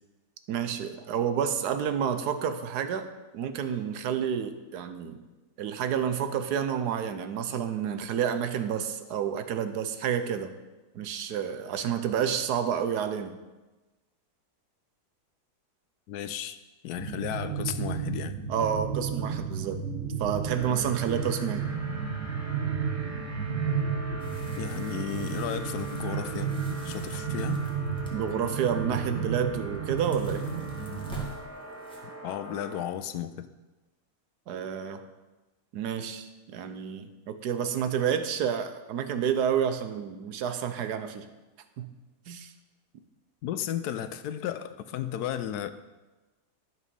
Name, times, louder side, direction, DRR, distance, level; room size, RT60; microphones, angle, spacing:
voice 1, 0.5-3.1 3.3-5.2 5.6-10.5 10.9-13.4 18.5-19.8 20.2-21.6 28.1-30.4 34.5-35.0 35.7-41.3 41.8-41.9 42.3-42.5, right 8 dB, 85° right, 9 dB, 1.3 m, -29 dB
voice 2, 16.1-16.6 16.8-18.4 24.6-26.5 26.8-27.6 32.2-33.5 43.4-45.7, left 10 dB, 80° left, 11 dB, 1.1 m, -34 dB
sound 1, 17.0-31.3, right 6 dB, 60° right, 1.5 m, -32 dB
sound 2, 20.5-32.9, right 2 dB, 20° right, 0.5 m, -43 dB
sound 3, 24.2-28.5 29.0-29.3 29.6-32.0, left 1 dB, 5° left, 1.5 m, -50 dB
11.0 x 6.3 x 5.3 m, 1.1 s
omnidirectional pair, 1.7 m